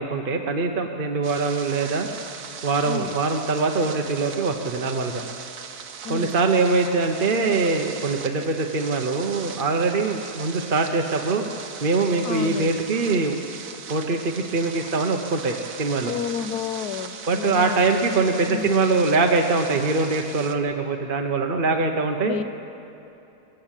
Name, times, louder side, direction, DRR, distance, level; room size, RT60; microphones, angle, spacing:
voice 1, 0.0-2.1 2.6-5.2 6.1-11.4 11.8-13.4 13.9-16.1 17.3-22.4, right 3 dB, 40° right, 4 dB, 0.9 m, -23 dB
sound 1, 1.2-20.6, right 6 dB, 65° right, 1.5 m, -39 dB
voice 2, 6.0-6.4 12.2-12.8 16.0-18.0 18.5-18.9 22.2-22.4, left 8 dB, 70° left, 12 dB, 1.2 m, -31 dB
20.5 x 15.5 x 8.9 m, 2.9 s
omnidirectional pair, 1.8 m